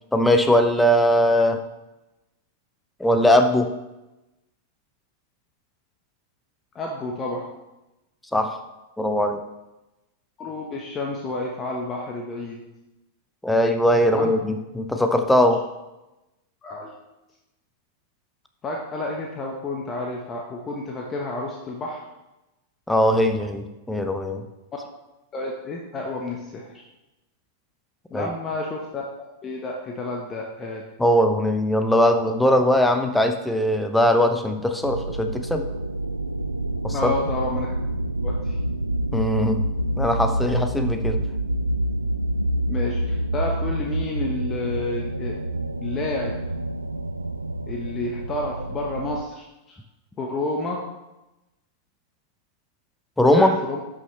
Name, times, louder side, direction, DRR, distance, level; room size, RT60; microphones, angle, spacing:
voice 1, 0.1-1.6 3.0-3.7 8.3-8.6 9.0-9.4 13.4-15.6 22.9-24.4 28.1-28.3 31.0-35.7 36.8-37.1 39.1-39.7 40.0-41.2 53.2-53.6, equal, 5° left, 6 dB, 0.8 m, -20 dB
voice 2, 6.7-7.5 10.4-12.6 14.1-14.3 16.6-17.0 18.6-22.0 25.3-26.8 28.1-30.8 36.9-37.9 38.2-38.6 42.7-45.4 45.8-46.4 47.7-49.8 50.2-50.8 53.3-53.8, left 2 dB, 25° left, -1 dB, 1.2 m, -30 dB
sound 1, 34.8-49.2, right 1 dB, 90° right, 0.3 m, -27 dB
11.0 x 6.2 x 3.3 m, 1.0 s
figure-of-eight pair, 95°, 0 cm